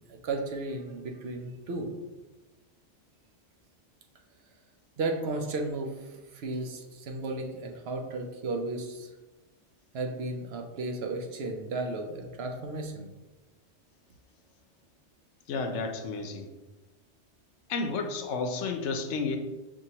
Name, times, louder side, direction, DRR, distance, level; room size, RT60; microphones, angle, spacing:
voice 1, 0.1-1.9 5.0-9.1 9.9-13.1, right 2 dB, 70° right, 3 dB, 0.8 m, -34 dB
voice 2, 15.5-16.5 17.7-19.4, left 4 dB, 85° left, 6 dB, 0.9 m, -31 dB
6.2 x 2.5 x 2.8 m, 1.1 s
omnidirectional pair, 1.2 m